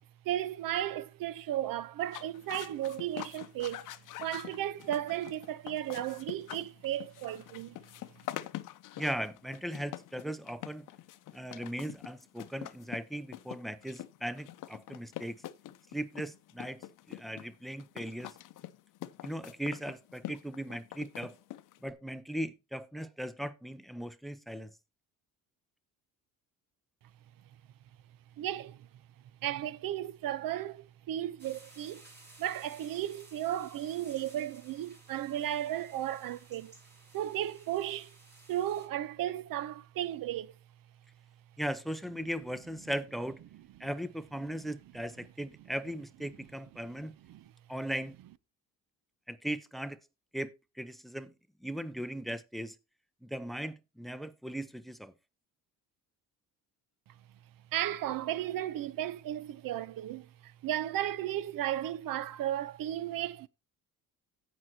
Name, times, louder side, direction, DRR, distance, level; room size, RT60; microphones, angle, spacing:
voice 1, 0.2-3.9 4.2-7.8 28.4-28.9 29.4-32.0 32.4-36.7 37.1-38.1 38.5-40.5 43.8-43.9 47.3-47.5 57.7-63.5, right 12 dB, 65° right, 0.8 m, -34 dB
sound 1, 2.0-21.9, left 13 dB, 60° left, 0.7 m, -45 dB
voice 2, 9.0-10.9 11.3-15.4 15.9-18.4 19.2-21.4 21.8-24.7 41.6-43.4 43.8-47.1 47.7-48.2 49.3-50.0 50.3-50.5 50.8-51.3 51.6-52.8 53.2-55.1, right 1 dB, ahead, 0.7 m, -38 dB
sound 2, 31.4-38.9, right 2 dB, 30° right, 5.8 m, -57 dB
16.5 x 6.2 x 2.9 m
cardioid pair, 125°, 36 cm